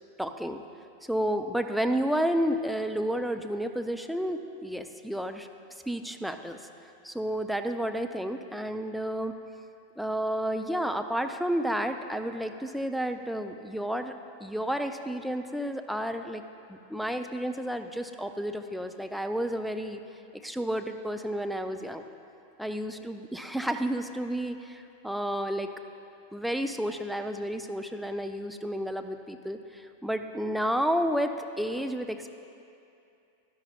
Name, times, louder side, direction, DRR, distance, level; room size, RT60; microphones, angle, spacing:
voice 1, 0.2-0.6 1.0-5.5 5.9-6.6 7.0-9.3 10.0-14.1 14.4-16.4 16.7-20.0 20.4-22.0 22.6-25.7 26.3-32.3, equal, ahead, 6 dB, 0.4 m, -31 dB
12.0 x 10.5 x 2.3 m, 2.6 s
figure-of-eight pair, 90°, 0 cm